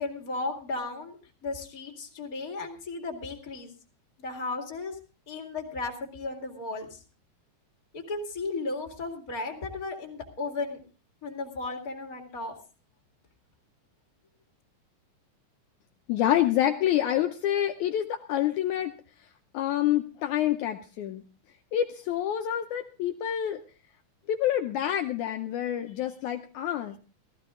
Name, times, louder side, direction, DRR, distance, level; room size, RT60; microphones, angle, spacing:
voice 1, 0.0-3.7 4.2-5.0 5.3-7.0 7.9-10.8 11.2-12.6, left 3 dB, 30° left, 2 dB, 2.5 m, -35 dB
voice 2, 16.1-18.9 19.5-21.2 21.7-23.6 24.3-27.0, left 11 dB, 75° left, 5 dB, 2.1 m, -27 dB
15.0 x 15.0 x 3.7 m, 0.35 s
omnidirectional pair, 3.7 m